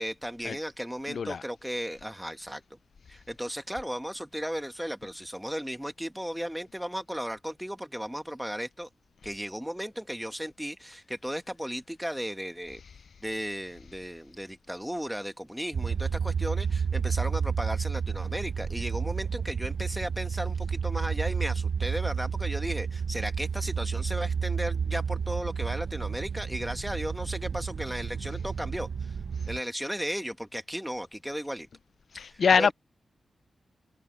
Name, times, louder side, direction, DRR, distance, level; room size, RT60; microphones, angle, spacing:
voice 1, 0.0-2.8 3.1-8.9 9.2-12.8 13.2-29.1 29.5-31.7 32.1-32.7, equal, 5° right, 1.5 m, -35 dB
voice 2, 1.1-1.4 32.1-32.7, left 6 dB, 65° left, 0.3 m, -24 dB
sound 1, 15.7-29.6, right 6 dB, 65° right, 1.0 m, -31 dB
wide cardioid pair, 105°, 0 cm